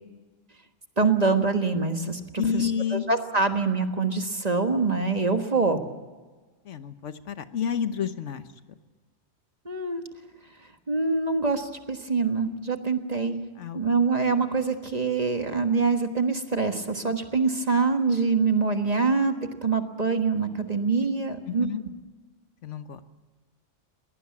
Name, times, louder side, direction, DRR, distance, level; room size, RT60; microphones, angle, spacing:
voice 1, 1.0-5.8 9.6-10.0 10.9-13.4 13.7-21.7, right 4 dB, 35° right, 7 dB, 1.5 m, -25 dB
voice 2, 2.4-3.1 6.6-8.5 13.6-13.8 21.5-21.8 22.6-23.0, left 8 dB, 75° left, 11 dB, 1.3 m, -29 dB
21.0 x 18.5 x 8.5 m, 1.3 s
omnidirectional pair, 1.3 m